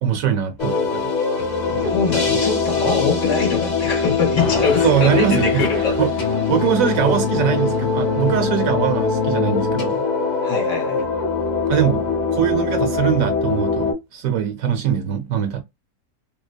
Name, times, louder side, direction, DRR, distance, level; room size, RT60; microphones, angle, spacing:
voice 1, 0.0-1.1 2.3-2.4 4.8-5.7 6.0-6.1 6.5-10.1 11.7-12.1 12.3-15.6, right 10 dB, 70° right, 1.0 m, -21 dB
sound 1, 0.6-13.9, left 4 dB, 35° left, 0.8 m, -22 dB
voice 2, 1.7-6.0 10.4-11.0, left 5 dB, 60° left, 1.1 m, -23 dB
2.8 x 2.0 x 2.3 m
omnidirectional pair, 1.6 m